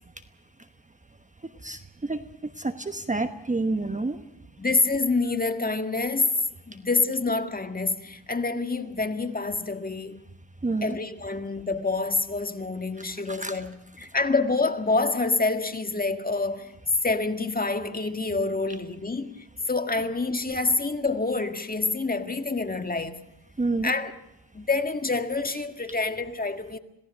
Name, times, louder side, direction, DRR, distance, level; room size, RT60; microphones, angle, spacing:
voice 1, 1.6-2.2 2.6-4.2 10.6-11.0 13.0-13.6 23.6-23.9, right 3 dB, 15° right, 1.1 m, -29 dB
voice 2, 4.6-10.3 10.8-16.7 17.0-23.2 23.8-24.1 24.5-26.8, left 3 dB, 20° left, 1.8 m, -27 dB
27.0 x 17.5 x 6.4 m
cardioid pair, 70°, 44 cm